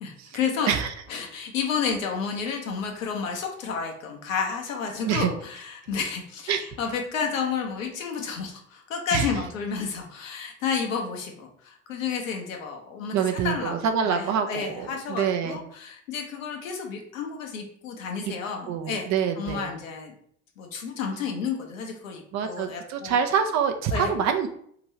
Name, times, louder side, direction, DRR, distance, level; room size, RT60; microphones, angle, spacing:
voice 1, 0.0-0.7 1.1-13.8 14.0-19.1 19.4-20.1 20.6-23.2 23.9-24.1, left 6 dB, 80° left, 2 dB, 0.8 m, -31 dB
voice 2, 13.1-15.6 18.7-19.7 22.3-24.5, right 7 dB, 45° right, 6 dB, 0.5 m, -26 dB
2.9 x 2.6 x 4.2 m, 0.65 s
figure-of-eight pair, 60°, 39 cm